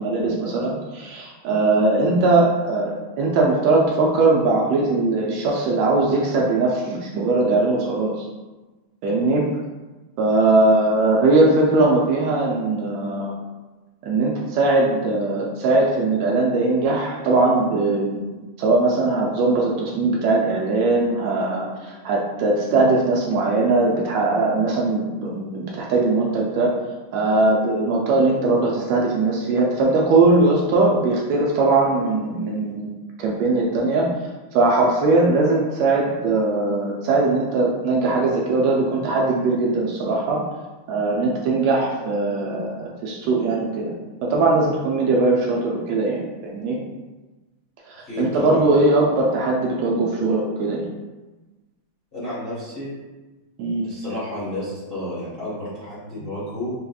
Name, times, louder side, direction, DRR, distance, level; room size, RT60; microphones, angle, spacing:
voice 1, 0.0-8.1 9.0-9.4 10.2-13.3 14.0-26.7 27.1-32.9 33.2-34.1 34.5-40.4 40.9-43.9 44.3-46.8 47.9-50.9 53.6-53.9, right 2 dB, 80° right, -2 dB, 1.6 m, -20 dB
voice 2, 48.0-48.8 52.1-52.9 53.8-56.7, left 1 dB, 80° left, -10 dB, 0.5 m, -31 dB
5.7 x 2.8 x 2.3 m, 1.2 s
omnidirectional pair, 3.3 m